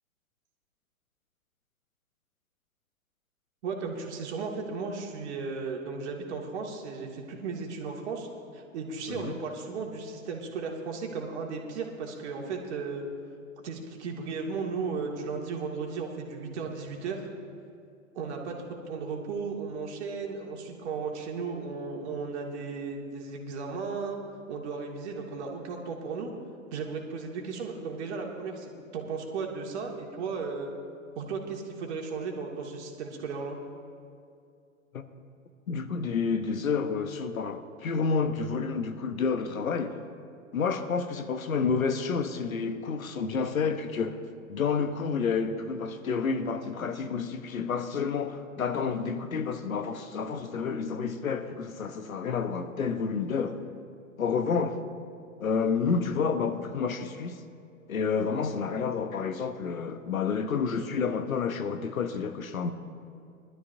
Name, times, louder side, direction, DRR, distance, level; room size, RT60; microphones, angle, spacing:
voice 1, 3.6-8.3 8.5-13.0 13.6-17.3 18.2-18.6 18.9-24.2 24.5-26.3 26.7-30.7 31.2-33.6, right 4 dB, 55° right, 2.3 m, -35 dB
voice 2, 35.7-40.0 40.5-44.2 44.5-53.6 54.2-54.8 55.4-57.4 57.9-62.7, left 5 dB, 80° left, 1.0 m, -29 dB
21.5 x 12.5 x 2.7 m
hypercardioid pair, 115°, 41 cm